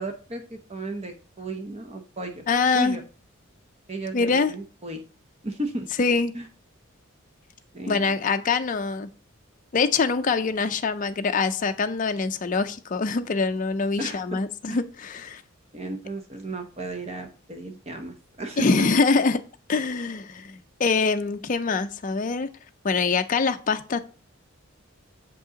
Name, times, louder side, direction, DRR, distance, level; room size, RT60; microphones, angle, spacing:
voice 1, 0.0-2.5 2.7-3.0 3.9-5.0 5.4-5.9 6.3-6.5 7.7-8.1 14.0-14.4 14.7-14.8 15.7-18.9, right 1 dB, 30° right, 5 dB, 0.7 m, -34 dB
voice 2, 2.5-3.0 4.1-4.5 6.0-6.3 7.9-9.1 9.7-15.4 18.6-19.4 19.7-22.5 22.8-24.0, left 4 dB, 40° left, 8 dB, 0.4 m, -24 dB
6.9 x 5.3 x 3.8 m, 0.37 s
head